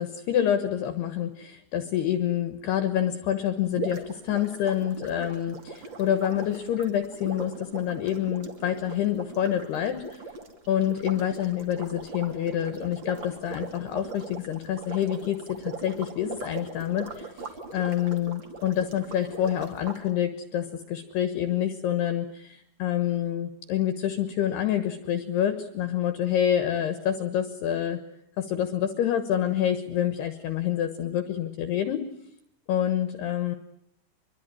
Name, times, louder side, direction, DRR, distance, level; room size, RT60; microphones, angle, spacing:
voice 1, 0.0-10.2 10.7-28.0 28.4-32.0 32.7-33.6, left 10 dB, 70° left, 11 dB, 2.9 m, -27 dB
sound 1, 3.7-20.0, right 3 dB, 35° right, 2.1 m, -40 dB
25.5 x 22.5 x 9.7 m, 0.74 s
omnidirectional pair, 5.7 m